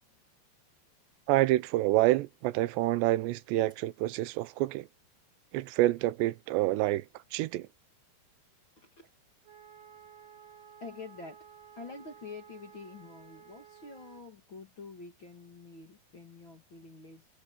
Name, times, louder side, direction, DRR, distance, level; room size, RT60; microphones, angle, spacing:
voice 1, 1.3-4.9 5.5-7.1 7.3-7.7, right 17 dB, 85° right, 2.9 m, -27 dB
voice 2, 8.8-9.1 10.8-11.5 11.7-17.3, left 4 dB, 40° left, 2.1 m, -47 dB
Wind instrument woodwind instrument, 9.4-14.2, right 7 dB, 40° right, 5.1 m, -54 dB
omnidirectional pair, 4.9 m